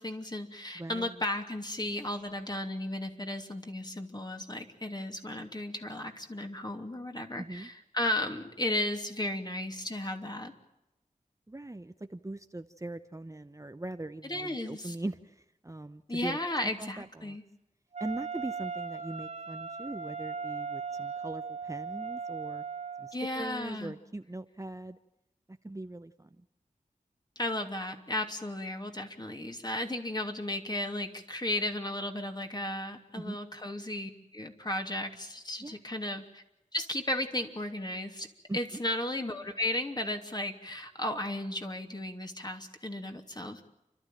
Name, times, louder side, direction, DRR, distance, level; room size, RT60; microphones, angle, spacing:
voice 1, 0.0-10.5 14.2-14.9 16.1-17.4 23.1-24.0 27.4-36.4 36.7-38.3 38.5-43.6, left 1 dB, 30° left, 4 dB, 2.9 m, -35 dB
voice 2, 0.7-1.2 7.4-7.7 11.5-16.4 16.8-17.4 18.0-22.6 23.0-25.0 25.5-26.4 33.2-33.4 35.6-35.8 38.5-38.8, right 2 dB, 20° right, 9 dB, 0.9 m, -41 dB
Wind instrument woodwind instrument, 17.9-23.2, right 5 dB, 55° right, 1.0 m, -38 dB
30.0 x 12.5 x 9.0 m, 0.94 s
wide cardioid pair, 50°, 14 cm